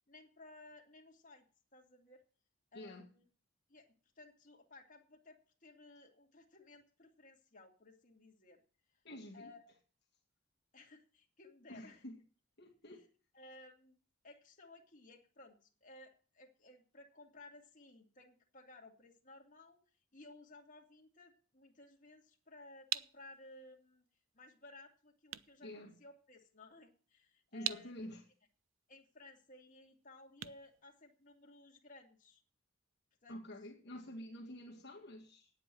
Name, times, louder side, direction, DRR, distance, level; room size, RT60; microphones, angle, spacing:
voice 1, 0.1-1.5 1.7-2.2 2.7-3.2 3.7-8.6 8.9-9.0 9.3-9.7 10.7-12.0 13.3-13.9 14.2-19.8 20.1-24.0 24.3-27.9 28.9-32.4 33.2-33.5 33.9-34.0, left 2 dB, 40° left, 2.4 m, -58 dB
voice 2, 2.7-3.1 9.0-9.5 11.7-12.2 12.6-13.1 25.6-26.0 27.5-28.2 33.3-35.5, left 1 dB, 60° left, 2.1 m, -49 dB
sound 1, 22.2-31.7, right 13 dB, 80° right, 0.5 m, -47 dB
9.4 x 8.0 x 7.6 m
head